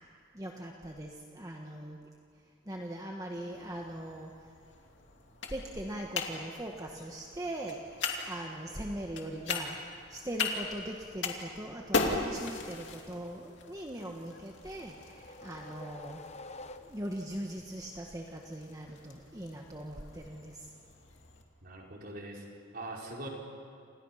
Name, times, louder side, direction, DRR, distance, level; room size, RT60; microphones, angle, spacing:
voice 1, 0.3-2.0 2.6-4.5 5.4-16.4 16.8-20.7, right 1 dB, 20° right, 1 dB, 1.5 m, -41 dB
sound 1, 3.5-21.4, left 3 dB, 65° left, 2.7 m, -40 dB
sound 2, 14.2-17.3, left 2 dB, 35° left, 0.9 m, -49 dB
voice 2, 21.6-22.5 22.7-23.3, right 1 dB, 50° right, -1 dB, 4.5 m, -42 dB
28.5 x 28.0 x 5.8 m, 2.3 s
head